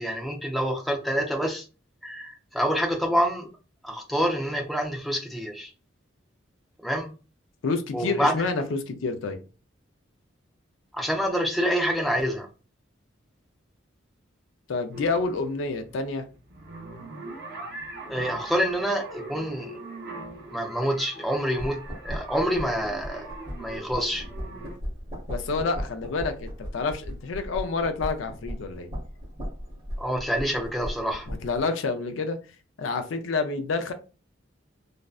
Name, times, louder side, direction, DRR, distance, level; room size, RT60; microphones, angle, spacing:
voice 1, 0.0-1.6 2.0-3.5 3.8-5.7 6.8-7.1 7.9-8.4 10.9-12.5 18.1-19.8 20.5-23.3 23.6-24.2 30.0-31.3, equal, ahead, 1 dB, 0.4 m, -27 dB
voice 2, 7.6-9.4 14.7-16.3 25.3-28.9 31.3-32.4 32.8-33.9, left 4 dB, 90° left, 7 dB, 0.4 m, -28 dB
sound 1, 14.9-24.8, right 2 dB, 60° right, 0.6 m, -41 dB
sound 2, 21.6-31.6, equal, 25° right, 1.0 m, -37 dB
2.5 x 2.1 x 2.3 m, 0.34 s
head